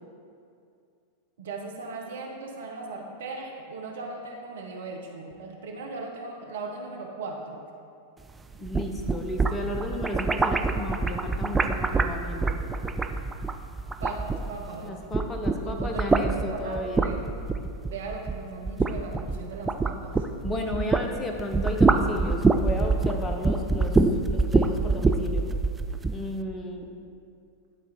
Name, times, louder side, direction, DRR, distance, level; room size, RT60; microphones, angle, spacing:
voice 1, 1.4-7.6 14.0-14.9 15.6-17.2 17.9-20.2, right 3 dB, 60° right, 0 dB, 0.8 m, -38 dB
sound 1, 8.5-14.7 15.0-21.1 21.4-26.2, right 3 dB, 10° right, 0.3 m, -25 dB
voice 2, 8.6-12.7 14.8-17.1 20.4-24.0 24.3-25.5 26.1-26.9, left 1 dB, 15° left, 3 dB, 0.9 m, -33 dB
11.0 x 4.1 x 4.3 m, 2.4 s
figure-of-eight pair, 90°, 0 cm